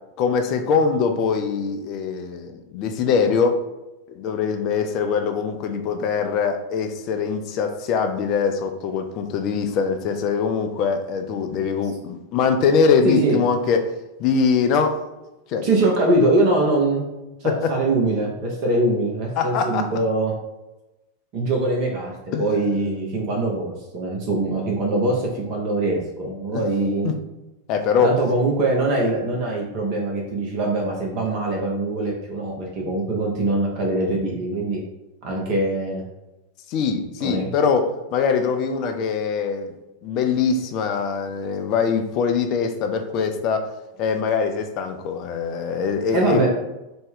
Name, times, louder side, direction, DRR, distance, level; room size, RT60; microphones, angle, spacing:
voice 1, 0.2-3.6 4.1-13.8 14.2-15.0 15.5-15.7 17.4-17.5 19.4-19.9 22.3-22.4 26.5-26.6 27.0-27.1 27.7-28.1 36.7-39.7 40.0-43.7 44.0-46.4, left 5 dB, 40° left, 6 dB, 0.5 m, -22 dB
voice 2, 13.0-13.4 15.6-17.0 17.4-20.3 21.3-27.1 28.0-34.8 35.2-36.0 37.2-37.5 46.1-46.5, right 2 dB, 45° right, -1 dB, 0.8 m, -23 dB
4.2 x 2.1 x 3.5 m, 1.0 s
figure-of-eight pair, 90°, 0 cm